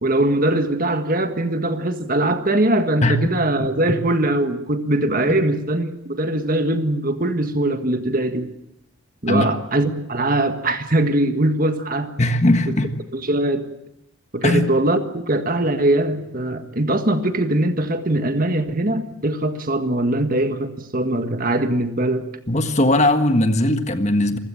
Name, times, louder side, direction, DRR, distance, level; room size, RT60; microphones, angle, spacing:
voice 1, 0.0-8.5 9.2-12.1 13.3-13.6 14.3-22.3, right 1 dB, 40° right, 8 dB, 1.7 m, -21 dB
voice 2, 12.2-12.9 14.4-14.6 22.5-24.4, left 1 dB, 30° left, 8 dB, 1.6 m, -19 dB
27.5 x 16.0 x 8.9 m, 0.81 s
head